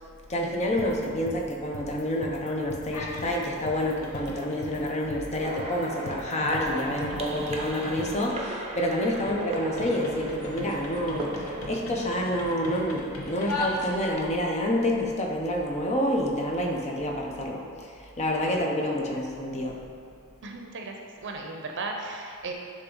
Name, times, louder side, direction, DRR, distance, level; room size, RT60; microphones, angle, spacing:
voice 1, 0.3-19.8, left 1 dB, 30° left, -1 dB, 0.8 m, -28 dB
sound 1, 0.8-8.3, left 4 dB, 50° left, 0.4 m, -42 dB
sound 2, 2.8-3.3 3.7-14.3, left 2 dB, 85° left, 1.0 m, -39 dB
sound 3, 5.4-11.7, right 1 dB, 30° right, 0.7 m, -37 dB
voice 2, 20.4-20.9 21.2-22.5, right 3 dB, 60° right, 1 dB, 0.8 m, -36 dB
10.0 x 3.5 x 3.9 m, 2.2 s
head